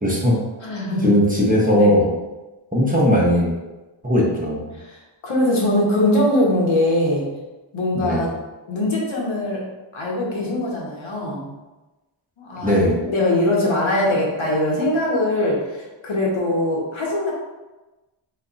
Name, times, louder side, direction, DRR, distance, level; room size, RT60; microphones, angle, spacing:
voice 1, 0.0-0.4 1.0-2.1 2.7-3.5 4.0-4.7 7.9-8.3 12.6-13.0, equal, 15° right, -5 dB, 1.1 m, -18 dB
voice 2, 0.6-1.1 1.7-1.9 4.7-7.2 7.7-8.3 8.7-9.6 9.9-11.5 12.4-17.3, left 1 dB, 70° left, -4 dB, 1.4 m, -22 dB
3.7 x 3.4 x 4.1 m, 1.1 s
wide cardioid pair, 105°, 49 cm